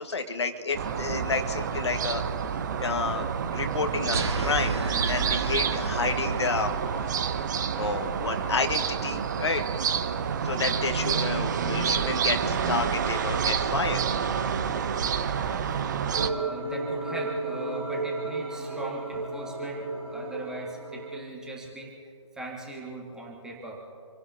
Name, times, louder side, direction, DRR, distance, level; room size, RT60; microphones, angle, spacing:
voice 1, 0.0-2.2 2.8-3.3 3.5-6.7 7.2-7.3 7.7-9.6 10.4-14.0, left 4 dB, 60° left, 6 dB, 1.5 m, -30 dB
sound 1, 0.7-16.3, right 7 dB, 35° right, 0.8 m, -28 dB
sound 2, 4.1-6.7, right 4 dB, 60° right, 1.7 m, -31 dB
voice 2, 15.2-15.7 16.2-21.9 22.3-23.8, right 1 dB, 5° right, -3 dB, 1.9 m, -40 dB
sound 3, 16.1-21.2, right 2 dB, 80° right, 3.6 m, -33 dB
27.0 x 17.5 x 2.8 m, 2.6 s
figure-of-eight pair, 140°, 16 cm